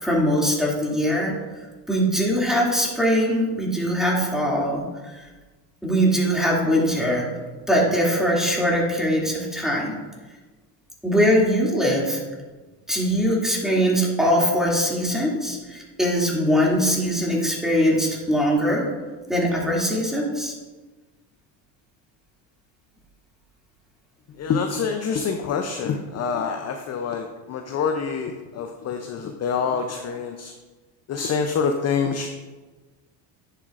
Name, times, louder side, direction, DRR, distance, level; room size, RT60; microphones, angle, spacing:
voice 1, 0.0-1.3 1.9-5.2 5.8-7.3 7.7-9.9 11.0-12.2 12.9-18.9 19.3-20.5, equal, ahead, -4 dB, 2.5 m, -22 dB
voice 2, 24.4-30.5 31.1-32.3, left 6 dB, 35° left, 5 dB, 0.6 m, -26 dB
9.9 x 7.5 x 2.5 m, 1.3 s
supercardioid pair, 95°, 48 cm